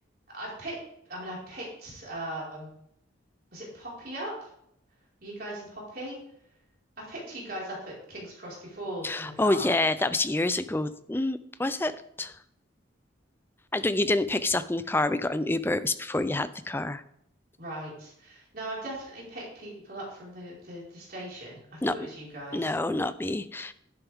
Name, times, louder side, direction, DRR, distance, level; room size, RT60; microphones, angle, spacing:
voice 1, 0.3-0.8 1.0-2.7 3.5-4.5 5.2-6.1 7.0-9.7 17.6-22.7, right 1 dB, 50° right, -5 dB, 4.8 m, -39 dB
voice 2, 9.0-12.4 13.7-17.0 21.8-21.9 22.5-23.7, left 2 dB, 10° left, 13 dB, 0.4 m, -27 dB
11.5 x 10.5 x 3.6 m, 0.73 s
head